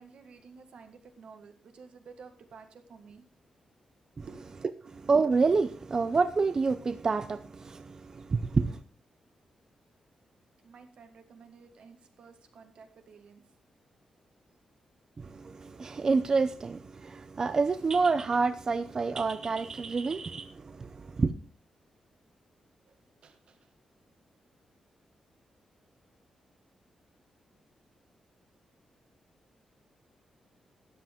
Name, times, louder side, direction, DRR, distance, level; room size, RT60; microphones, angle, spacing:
voice 1, 0.0-3.2 4.3-4.4 10.6-13.4 22.9-23.0 23.2-23.7, right 5 dB, 60° right, 1.7 m, -52 dB
voice 2, 4.8-8.8 15.2-21.3, right 4 dB, 30° right, 0.5 m, -28 dB
13.0 x 9.9 x 3.6 m
wide cardioid pair, 175°, 2 cm